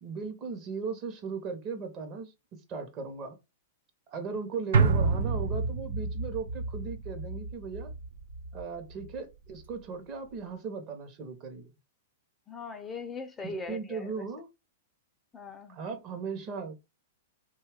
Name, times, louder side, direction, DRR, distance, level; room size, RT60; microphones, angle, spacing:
voice 1, 0.0-3.4 4.1-7.9 8.5-11.6 13.4-14.5 15.7-16.8, right 5 dB, 40° right, 0.8 m, -37 dB
sound 1, 4.7-9.2 9.5-9.6, right 4 dB, 70° right, 0.4 m, -29 dB
voice 2, 12.5-14.2 15.3-15.8, left 4 dB, 20° left, 0.5 m, -40 dB
2.7 x 2.3 x 3.4 m
hypercardioid pair, 110°, 0 cm